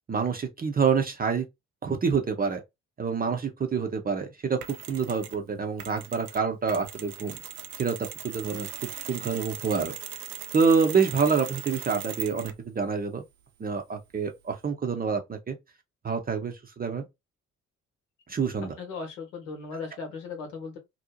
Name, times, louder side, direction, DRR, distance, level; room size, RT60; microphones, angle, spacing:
voice 1, 0.1-1.4 1.8-2.6 3.0-7.4 7.8-8.0 8.2-8.7 9.1-10.0 10.5-13.2 13.6-15.6 16.0-17.0 18.3-18.7, right 5 dB, 20° right, 0.6 m, -27 dB
Mechanisms, 4.6-5.4 5.8-12.7, right 10 dB, 70° right, 0.5 m, -40 dB
voice 2, 18.6-20.8, left 4 dB, 70° left, 0.9 m, -37 dB
2.6 x 2.0 x 2.7 m
figure-of-eight pair, 40°, 40 cm